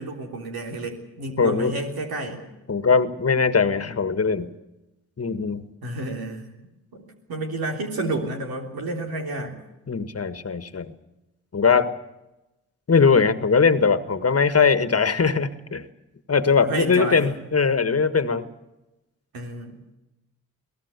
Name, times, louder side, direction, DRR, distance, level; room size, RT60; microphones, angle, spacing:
voice 1, 0.0-2.4 5.8-6.5 6.9-9.6 16.6-17.3 19.3-19.7, right 2 dB, 85° right, 2 dB, 3.6 m, -30 dB
voice 2, 1.4-1.7 2.7-4.5 5.2-5.6 9.9-10.9 11.5-11.9 12.9-15.8 16.3-18.5, left 5 dB, 40° left, 12 dB, 1.7 m, -20 dB
23.0 x 17.5 x 8.3 m, 0.98 s
supercardioid pair, 45°, 36 cm